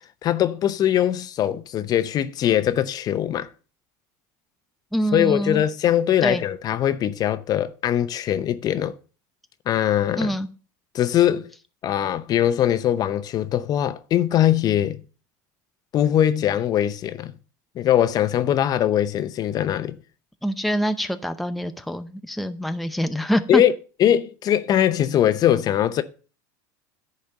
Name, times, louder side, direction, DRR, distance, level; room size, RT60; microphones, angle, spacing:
voice 1, 0.2-3.5 5.1-9.0 9.7-10.3 10.9-11.5 11.8-15.0 15.9-17.3 17.8-20.0 23.5-23.7 24.0-26.0, left 11 dB, 40° left, 0.7 m, -21 dB
voice 2, 4.9-5.6 6.2-6.4 10.2-10.5 20.4-23.6, equal, ahead, 0.6 m, -25 dB
10.5 x 4.3 x 6.4 m
supercardioid pair, 115°, 10 cm